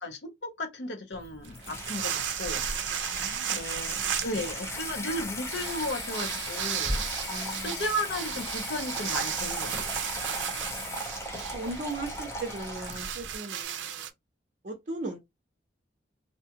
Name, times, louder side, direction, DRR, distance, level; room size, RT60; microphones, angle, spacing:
voice 1, 0.0-2.6 3.5-10.0, left 1 dB, 65° left, 0.7 m, -35 dB
Water tap faucet / Sink (filling or washing), 1.1-13.3, left 1 dB, 15° left, 0.6 m, -37 dB
sound 1, 1.4-14.1, right 10 dB, 90° right, 0.4 m, -35 dB
voice 2, 3.1-3.8 7.3-7.8 10.3-10.9 11.5-14.1 14.6-15.2, right 2 dB, 45° right, 0.6 m, -38 dB
2.7 x 2.2 x 2.7 m
head